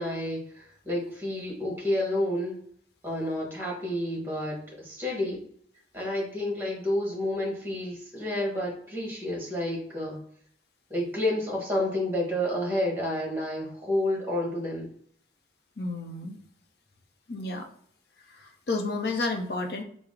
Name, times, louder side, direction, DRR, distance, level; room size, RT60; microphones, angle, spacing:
voice 1, 0.0-2.6 3.0-5.4 5.9-10.2 10.9-14.9, left 1 dB, 15° right, -2 dB, 1.2 m, -30 dB
voice 2, 15.8-16.4 17.3-17.7 18.4-19.8, left 3 dB, 65° left, 5 dB, 0.6 m, -31 dB
4.6 x 2.0 x 3.6 m, 0.62 s
head